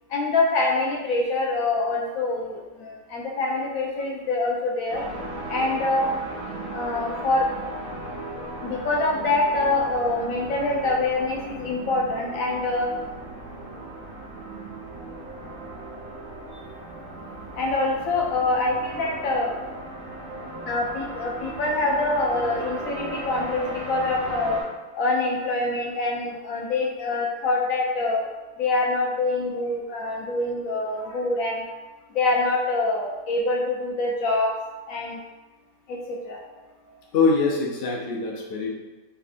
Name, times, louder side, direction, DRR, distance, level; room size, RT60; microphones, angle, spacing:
voice 1, 0.1-5.0 5.5-6.1 6.7-7.5 8.6-12.9 17.5-19.5 20.7-24.6 24.9-28.3 28.6-31.7 32.1-34.5 34.9-35.2 35.9-36.4 36.8-37.0, left 2 dB, 70° left, -1 dB, 0.9 m, -25 dB
sound 1, 4.9-24.6, right 2 dB, 55° right, 1.1 m, -36 dB
voice 2, 37.1-38.7, left 4 dB, 85° left, -2 dB, 0.5 m, -24 dB
3.6 x 3.3 x 2.5 m, 1.2 s
omnidirectional pair, 1.7 m